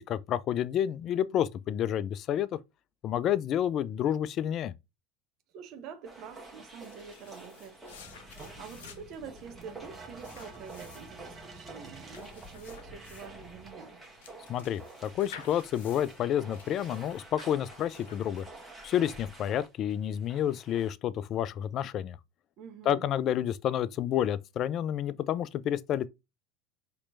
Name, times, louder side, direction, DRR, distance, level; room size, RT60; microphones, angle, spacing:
voice 1, 0.0-2.6 3.0-4.7 14.5-18.5 18.8-22.2 22.9-26.1, left 10 dB, 45° left, 0.3 m, -29 dB
voice 2, 5.5-7.8 8.6-14.0 22.6-23.1, right 6 dB, 55° right, 0.8 m, -47 dB
sound 1, 6.0-20.9, right 2 dB, 15° right, 1.3 m, -50 dB
sound 2, 6.6-18.7, left 7 dB, 75° left, 0.8 m, -53 dB
sound 3, 7.9-13.7, right 2 dB, 30° right, 1.1 m, -50 dB
4.3 x 3.1 x 2.5 m
hypercardioid pair, 75°, 0 cm